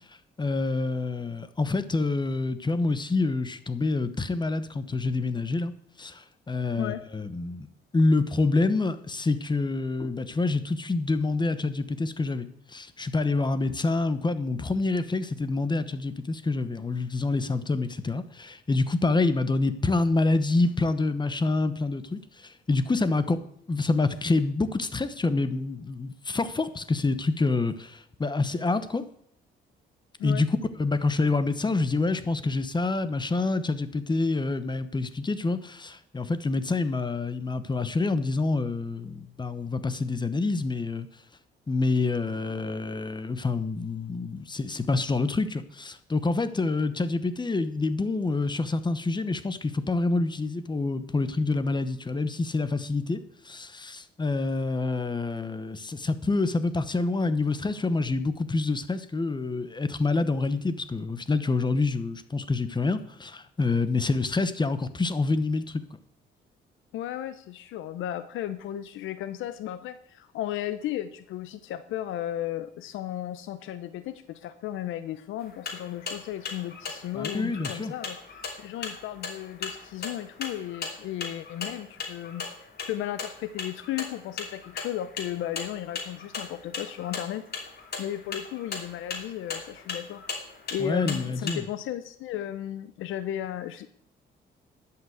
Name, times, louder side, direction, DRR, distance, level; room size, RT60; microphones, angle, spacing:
voice 1, 0.4-5.7 6.0-7.7 7.9-23.4 23.7-29.0 30.2-30.5 30.8-41.1 41.7-53.2 53.4-65.8 77.1-77.9 90.8-91.6, left 3 dB, 20° left, 12 dB, 1.0 m, -27 dB
voice 2, 66.9-82.4 82.9-87.5 88.0-90.2 90.7-93.9, left 12 dB, 85° left, 12 dB, 0.6 m, -35 dB
sound 1, 75.4-91.5, left 4 dB, 55° left, 2.8 m, -38 dB
11.5 x 5.9 x 7.9 m, 0.68 s
cardioid pair, 90°, 20 cm